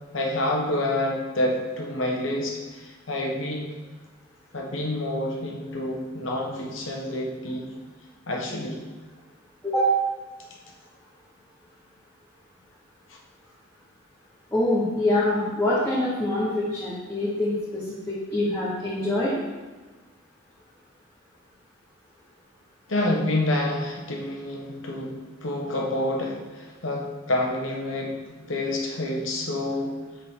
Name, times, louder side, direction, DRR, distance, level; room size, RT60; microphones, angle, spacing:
voice 1, 0.1-3.6 4.5-7.7 8.3-8.8 22.9-29.9, left 1 dB, 70° left, 0 dB, 1.1 m, -28 dB
voice 2, 14.5-19.4, left 1 dB, 10° left, -9 dB, 1.1 m, -25 dB
6.4 x 4.1 x 3.7 m, 1.3 s
head